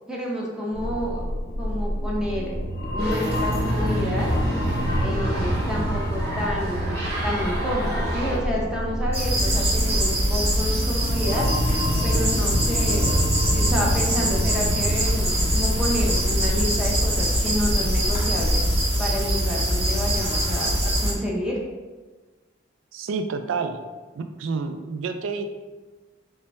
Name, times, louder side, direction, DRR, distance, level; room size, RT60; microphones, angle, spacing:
voice 1, 0.1-1.2 1.6-2.5 2.9-4.3 5.0-6.9 7.2-11.5 12.0-18.6 19.0-20.7 21.0-21.6, equal, 5° right, -4 dB, 0.6 m, -29 dB
sound 1, 0.7-18.8, equal, 60° left, 0.7 m, -27 dB
sound 2, 3.0-8.4, right 1 dB, 55° right, 0.7 m, -32 dB
sound 3, 9.1-21.1, equal, 35° right, 1.0 m, -23 dB
voice 2, 22.9-23.8 24.1-25.5, right 4 dB, 90° right, 7 dB, 0.3 m, -29 dB
3.3 x 2.2 x 4.1 m, 1.3 s
head